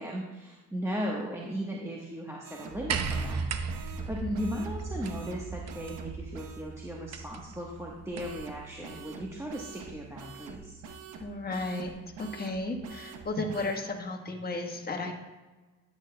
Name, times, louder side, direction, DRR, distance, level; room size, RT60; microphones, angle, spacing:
voice 1, 0.0-3.4 4.1-10.8, equal, 10° right, -3 dB, 1.3 m, -37 dB
sound 1, 2.4-6.6 8.1-13.8, right 6 dB, 90° right, 1.1 m, -45 dB
sound 2, 2.9-8.5 9.6-9.7, right 5 dB, 60° right, 0.8 m, -36 dB
voice 2, 4.2-4.5 11.2-15.1, left 2 dB, 30° left, 2 dB, 1.5 m, -34 dB
12.5 x 8.6 x 2.3 m, 1.2 s
cardioid pair, 90°, 30 cm